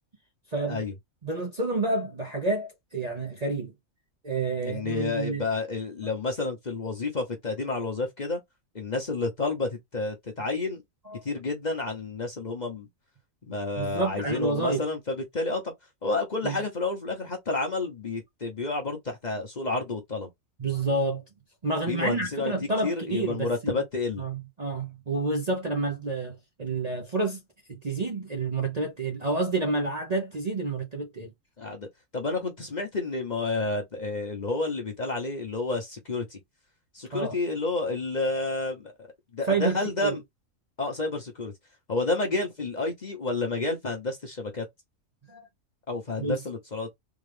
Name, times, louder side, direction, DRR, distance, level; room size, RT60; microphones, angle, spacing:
voice 1, 0.5-0.8 1.2-3.7 4.2-5.4 11.1-11.2 13.8-14.8 16.4-16.6 20.6-21.2 21.6-23.8 24.2-27.4 27.7-31.3 37.1-37.4 39.5-40.2 45.3-45.4 46.2-46.4, right 3 dB, 35° right, 0.7 m, -29 dB
voice 2, 4.6-8.4 8.7-10.8 11.2-12.9 13.4-15.7 16.0-20.3 21.9-22.5 22.8-24.3 31.6-31.9 32.1-36.4 36.9-38.9 39.3-40.2 40.8-41.5 41.9-44.6 45.9-46.9, left 3 dB, 35° left, 0.9 m, -30 dB
3.7 x 2.3 x 3.3 m
omnidirectional pair, 1.4 m